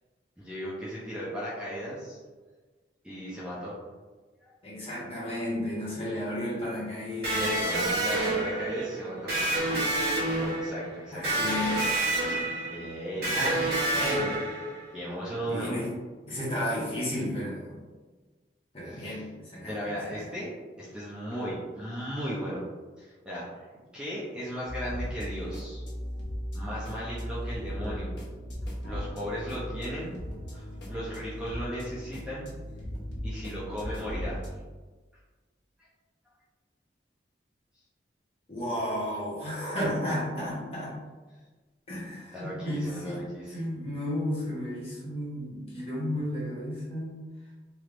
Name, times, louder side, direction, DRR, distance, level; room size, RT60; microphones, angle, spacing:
voice 1, 0.4-2.2 3.0-3.7 4.4-4.5 7.4-9.3 10.4-11.4 12.7-13.4 14.9-15.7 16.3-16.4 18.8-19.2 19.7-20.5 20.8-22.6 23.0-23.7 23.9-25.8 26.5-28.2 28.8-30.2 30.5-32.5 33.2-34.4 42.3-43.6, equal, 5° right, -8 dB, 0.6 m, -36 dB
voice 2, 4.6-7.5 11.1-12.1 13.1-14.4 15.5-15.9 16.3-17.8 18.7-20.3 38.5-41.0 41.9-47.3, left 1 dB, 30° left, -5 dB, 0.9 m, -33 dB
Electric guitar, 7.2-14.9, right 2 dB, 60° right, 0.9 m, -29 dB
sound 1, 24.7-34.5, equal, 85° left, 0.8 m, -37 dB
3.2 x 3.1 x 2.5 m, 1.3 s
head